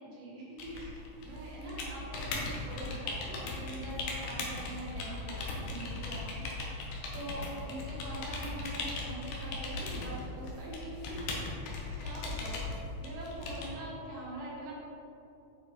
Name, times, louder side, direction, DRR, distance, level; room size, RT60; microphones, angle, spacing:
voice 1, 0.0-6.4 7.1-11.2 12.0-14.7, right 1 dB, 65° right, -6 dB, 3.2 m, -43 dB
sound 1, 0.6-13.7, left 2 dB, 75° left, 1.8 m, -38 dB
7.7 x 4.7 x 3.7 m, 2.9 s
omnidirectional pair, 4.4 m